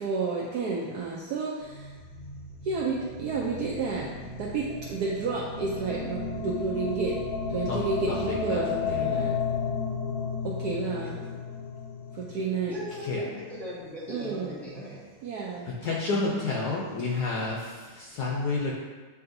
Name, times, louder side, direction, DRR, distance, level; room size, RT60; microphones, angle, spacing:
voice 1, 0.0-1.9 2.6-9.4 10.4-11.2 12.1-12.8 14.1-14.6 15.2-15.7, right 4 dB, 75° right, -5 dB, 0.9 m, -31 dB
sound 1, 1.6-13.9, left 5 dB, 85° left, 1.6 m, -34 dB
voice 2, 8.1-9.1 13.1-13.2 15.8-18.7, left 3 dB, 70° left, -4 dB, 1.0 m, -30 dB
voice 3, 12.7-15.0, left 1 dB, ahead, -9 dB, 1.0 m, -38 dB
7.6 x 2.7 x 2.6 m, 1.3 s
omnidirectional pair, 2.2 m